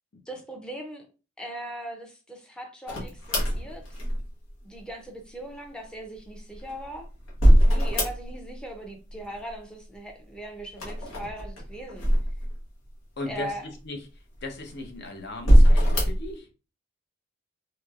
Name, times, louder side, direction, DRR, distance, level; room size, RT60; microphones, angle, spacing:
voice 1, 0.3-1.1 1.4-3.8 4.6-7.1 7.7-12.1 13.3-13.6, right 1 dB, 5° left, 0.5 m, -39 dB
sound 1, 2.9-4.5 6.4-8.6 8.8-9.6 10.7-12.8 13.4-13.5 14.3-14.9 15.4-16.3, equal, 85° left, 1.0 m, -21 dB
voice 2, 13.2-14.1 14.4-16.5, left 2 dB, 55° left, 0.7 m, -37 dB
3.0 x 2.9 x 2.3 m
head